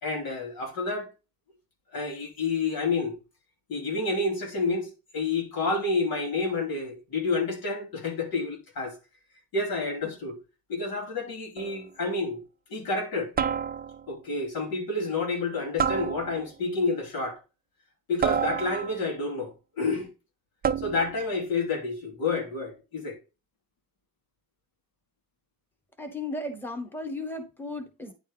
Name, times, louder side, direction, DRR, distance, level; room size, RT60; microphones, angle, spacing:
voice 1, 0.0-1.1 1.9-3.1 3.7-9.0 9.5-10.4 10.7-12.4 12.7-13.3 14.1-17.4 18.1-20.1 20.8-23.2, left 3 dB, 80° left, 3.2 m, -29 dB
sound 1, 11.6-11.9 13.4-14.2 15.8-16.6 18.2-19.2 20.6-21.2, right 7 dB, 30° right, 0.4 m, -29 dB
voice 2, 26.0-28.1, left 2 dB, 5° left, 1.3 m, -35 dB
9.8 x 4.6 x 3.5 m
cardioid pair, 145°, 35 cm